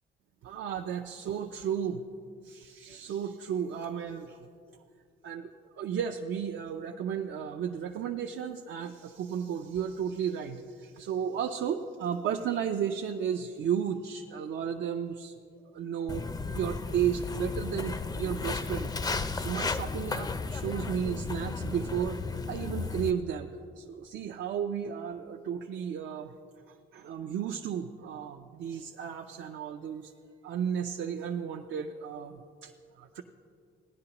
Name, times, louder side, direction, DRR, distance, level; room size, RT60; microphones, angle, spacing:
voice 1, 0.4-2.0 2.4-4.5 5.2-5.5 5.8-15.3 15.7-16.2 16.5-18.9 19.2-22.2 22.5-26.3 26.7-30.1 30.4-33.2, right 8 dB, 70° right, 4 dB, 0.5 m, -33 dB
Walk footsteps, 16.1-23.1, left 4 dB, 20° left, 0.4 m, -34 dB
16.5 x 10.5 x 2.9 m, 2.3 s
cardioid pair, 90°, 20 cm